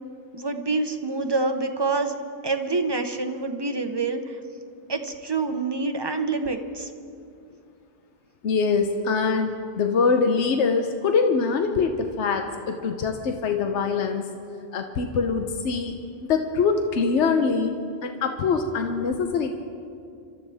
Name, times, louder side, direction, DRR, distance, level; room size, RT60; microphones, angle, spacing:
voice 1, 0.3-2.2 2.4-4.4 4.9-6.9, right 3 dB, 25° right, 6 dB, 0.7 m, -26 dB
voice 2, 8.4-14.2 14.7-17.7 18.0-19.5, left 5 dB, 85° left, 5 dB, 1.1 m, -24 dB
26.5 x 13.0 x 3.5 m, 2.4 s
omnidirectional pair, 1.2 m